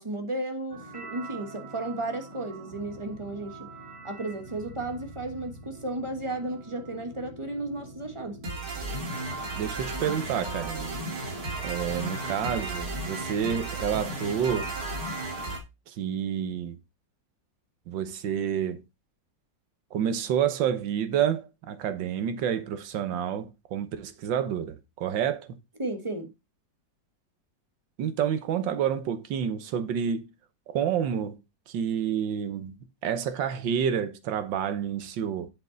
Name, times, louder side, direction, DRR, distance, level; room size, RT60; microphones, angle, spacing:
voice 1, 0.0-3.7 4.0-8.4 25.8-26.3, right 2 dB, 20° right, 1.1 m, -34 dB
sound 1, 0.7-15.6, right 2 dB, 50° right, 2.7 m, -37 dB
voice 2, 9.5-11.0 11.6-14.7 15.9-16.8 17.9-18.8 19.9-25.6 28.0-30.3 30.7-31.4 31.7-32.8 33.0-35.5, right 8 dB, 75° right, 1.7 m, -29 dB
7.8 x 6.9 x 3.9 m
omnidirectional pair, 2.0 m